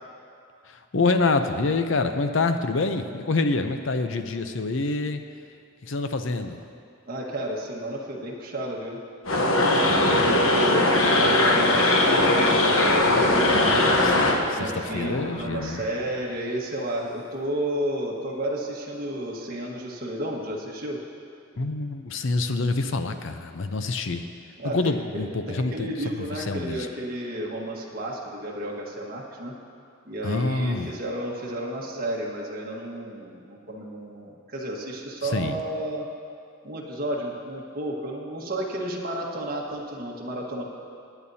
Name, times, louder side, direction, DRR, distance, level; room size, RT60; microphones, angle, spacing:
voice 1, 0.7-5.2 5.8-6.6 9.7-10.3 13.2-13.6 14.1-15.8 21.6-24.2 24.6-26.9 30.2-30.9 35.3-35.6, left 3 dB, 70° left, 8 dB, 0.6 m, -27 dB
voice 2, 7.1-9.0 9.7-13.9 14.5-21.0 24.6-29.5 30.0-36.0 36.6-40.6, right 1 dB, 45° right, -2 dB, 1.5 m, -32 dB
sound 1, 9.3-14.4, left 1 dB, 85° left, 1.1 m, -20 dB
sound 2, 13.0-16.9, equal, 55° left, 2.5 m, -41 dB
21.0 x 9.0 x 2.8 m, 2.4 s
head